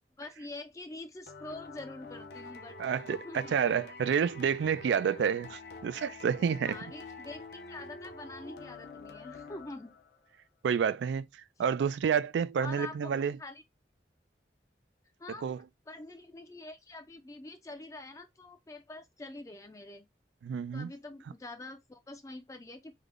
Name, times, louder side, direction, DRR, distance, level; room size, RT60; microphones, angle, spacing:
voice 1, 0.2-2.8 3.1-3.5 6.6-9.9 12.6-13.6 15.2-15.5 15.9-20.1 20.7-22.9, left 2 dB, 20° left, 0.4 m, -45 dB
sound 1, 1.3-10.2, left 3 dB, 65° left, 0.6 m, -47 dB
voice 2, 2.8-6.8 10.6-13.4 15.4-15.6 20.4-20.9, right 7 dB, 80° right, 0.3 m, -29 dB
3.4 x 2.1 x 3.6 m
head